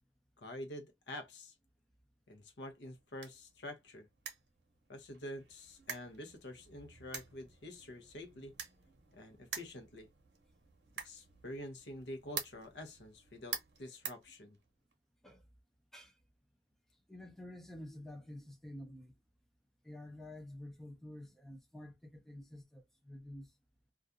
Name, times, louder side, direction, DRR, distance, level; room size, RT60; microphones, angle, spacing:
voice 1, 0.4-1.5 2.3-4.1 4.9-8.5 9.1-10.1 11.0-14.6, left 1 dB, 70° left, 0.7 m, -47 dB
sound 1, 2.7-14.9, right 7 dB, 70° right, 0.7 m, -48 dB
voice 2, 17.1-19.1 19.8-23.5, left 1 dB, ahead, 0.4 m, -49 dB
2.4 x 2.3 x 2.5 m
head